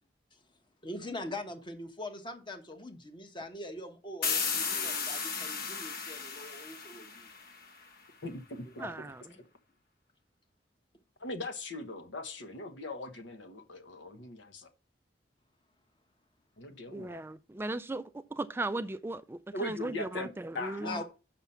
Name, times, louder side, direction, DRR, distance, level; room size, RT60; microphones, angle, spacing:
voice 1, 0.8-7.3 8.6-9.0 20.8-21.0, left 1 dB, 25° left, 1.3 m, -42 dB
sound 1, 4.2-7.8, left 5 dB, 55° left, 1.1 m, -34 dB
voice 2, 8.2-8.9 11.2-14.7 16.6-17.2 19.5-20.3 20.5-21.0, left 2 dB, 85° left, 1.2 m, -40 dB
voice 3, 8.8-9.2 16.9-21.0, right 2 dB, 15° right, 0.3 m, -37 dB
7.1 x 5.9 x 5.6 m
head